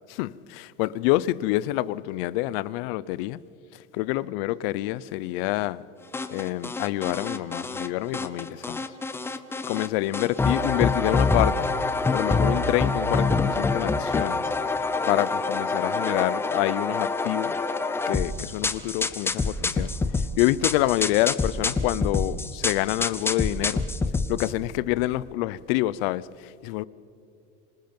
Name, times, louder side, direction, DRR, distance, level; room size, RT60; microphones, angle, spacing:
voice 1, 0.1-3.4 3.9-5.8 6.3-8.8 9.7-11.7 12.1-14.4 15.1-17.6 18.0-19.9 20.4-23.8 24.3-26.3 26.6-26.8, left 17 dB, 75° left, 0.7 m, -27 dB
sound 1, 6.1-7.9 8.1-9.9 10.1-24.5, left 3 dB, 10° left, 0.6 m, -26 dB
26.0 x 20.0 x 5.3 m
cardioid pair, 165°, 29 cm